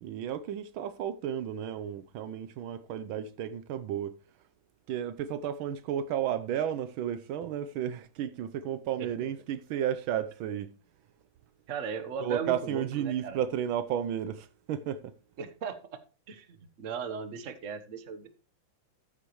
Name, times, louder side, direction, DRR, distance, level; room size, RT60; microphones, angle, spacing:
voice 1, 0.0-4.1 4.9-10.7 12.2-15.1, right 10 dB, 75° right, 1.4 m, -33 dB
voice 2, 9.0-9.3 11.7-13.4 15.4-15.8 16.3-18.3, right 6 dB, 45° right, 1.3 m, -37 dB
14.0 x 8.2 x 3.1 m
omnidirectional pair, 2.3 m